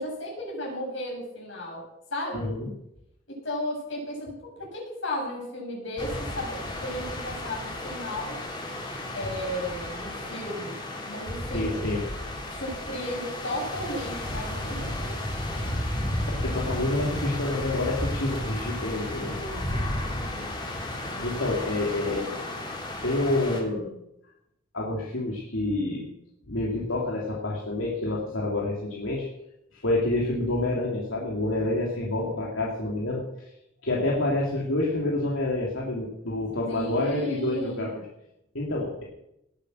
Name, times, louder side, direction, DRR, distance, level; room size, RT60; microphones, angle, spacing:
voice 1, 0.0-1.8 2.1-2.5 3.3-8.4 9.1-11.9 12.5-15.6 19.4-20.5 21.0-21.3 36.7-38.0, left 1 dB, 65° left, -2 dB, 7.7 m, -35 dB
voice 2, 2.3-2.7 11.5-12.0 16.3-19.4 21.2-22.3 23.0-23.9 24.7-26.1 26.5-29.3 29.7-33.5 33.8-38.0 38.5-39.0, left 2 dB, 85° left, -3 dB, 3.0 m, -28 dB
sound 1, 6.0-23.6, left 1 dB, 25° left, 3.0 m, -33 dB
19.0 x 8.7 x 6.4 m, 0.81 s
head